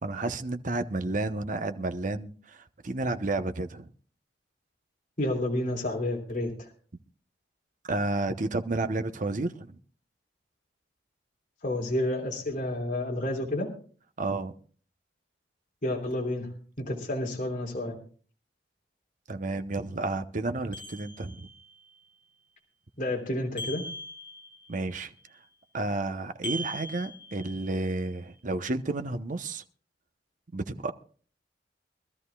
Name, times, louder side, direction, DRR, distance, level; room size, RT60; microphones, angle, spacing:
voice 1, 0.0-3.9 7.9-9.8 14.2-14.5 19.3-21.5 24.7-25.1 25.7-29.6 30.5-30.9, right 2 dB, 45° right, 9 dB, 0.9 m, -31 dB
voice 2, 5.2-6.7 11.6-13.7 15.8-16.5 16.8-18.0 23.0-23.8, left 1 dB, 50° left, -1 dB, 3.2 m, -30 dB
sound 1, 20.7-21.7 23.6-24.8 26.4-27.9, equal, 25° left, 7.2 m, -40 dB
24.5 x 13.5 x 2.3 m, 0.43 s
head